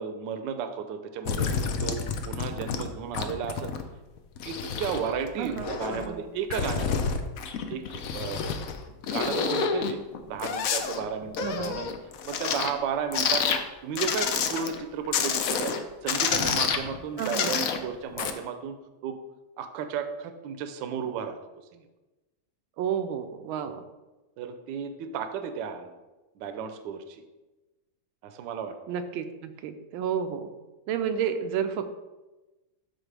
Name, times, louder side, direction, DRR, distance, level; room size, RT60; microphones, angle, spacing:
voice 1, 0.0-1.5 1.8-2.0 2.2-3.7 4.4-7.1 7.7-10.0 10.3-11.9 12.3-13.5 13.8-15.7 16.0-18.8 19.0-19.2 19.6-21.4 21.7-21.9 23.6-23.7 24.4-26.0 26.4-27.2 28.2-28.7, right 7 dB, 70° right, 8 dB, 1.3 m, -34 dB
sound 1, 1.3-2.9 3.1-3.8 4.2-6.1 6.5-8.8 9.0-12.8 13.1-13.6 14.0-14.8 15.1-15.8 16.1-17.8 18.1-18.3, left 6 dB, 70° left, 0.8 m, -29 dB
voice 2, 5.4-6.2 9.3-9.6 11.4-11.7 17.2-17.6 22.8-23.8 28.9-30.5 30.9-31.9, right 8 dB, 90° right, 7 dB, 1.4 m, -31 dB
12.0 x 4.5 x 3.3 m, 1.1 s
omnidirectional pair, 2.2 m